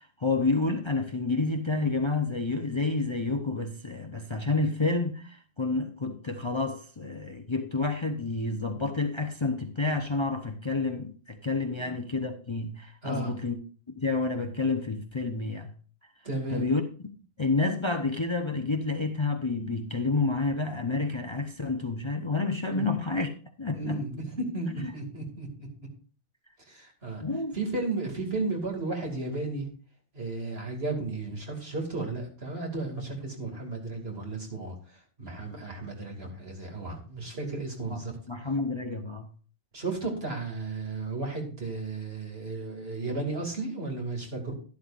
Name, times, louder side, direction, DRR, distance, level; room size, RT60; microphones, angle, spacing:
voice 1, 0.0-13.6 14.0-15.7 16.5-16.8 17.4-23.3 23.6-24.0 24.8-24.9 27.2-27.6 37.9-38.0 38.3-39.3, left 3 dB, 30° left, 0.7 m, -29 dB
voice 2, 16.2-16.7 22.7-22.9 23.7-25.7 26.7-27.2 27.5-29.7 30.1-38.1 39.7-44.5, right 3 dB, 60° right, 2.7 m, -34 dB
12.0 x 11.0 x 2.5 m
omnidirectional pair, 1.2 m